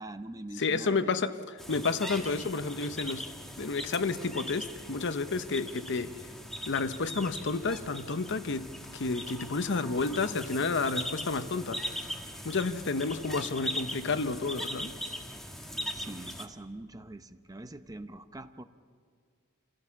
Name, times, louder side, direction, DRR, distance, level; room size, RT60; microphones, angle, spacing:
voice 1, 0.0-1.2 15.9-18.6, right 2 dB, 15° right, 10 dB, 0.6 m, -43 dB
voice 2, 0.6-1.4 1.7-3.2 3.6-6.1 6.7-8.7 8.9-11.8 12.4-14.9, left 4 dB, 55° left, 11 dB, 0.8 m, -30 dB
sound 1, 1.6-16.5, equal, ahead, 1.5 m, -40 dB
27.5 x 16.5 x 7.2 m, 2.1 s
head